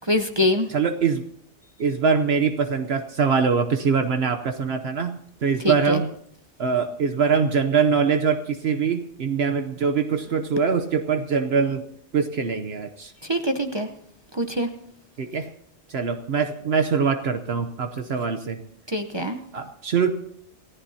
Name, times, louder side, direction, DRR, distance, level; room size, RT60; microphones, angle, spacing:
voice 1, 0.1-0.7 5.6-6.0 13.3-13.9 14.3-14.7 18.9-19.4, left 1 dB, 25° right, 5 dB, 0.8 m, -23 dB
voice 2, 0.7-1.2 1.8-6.1 6.6-11.8 12.1-13.1 15.2-15.5 15.9-18.6 19.5-20.1, right 6 dB, 65° right, 7 dB, 1.1 m, -23 dB
28.5 x 14.5 x 2.8 m, 0.67 s
omnidirectional pair, 1.2 m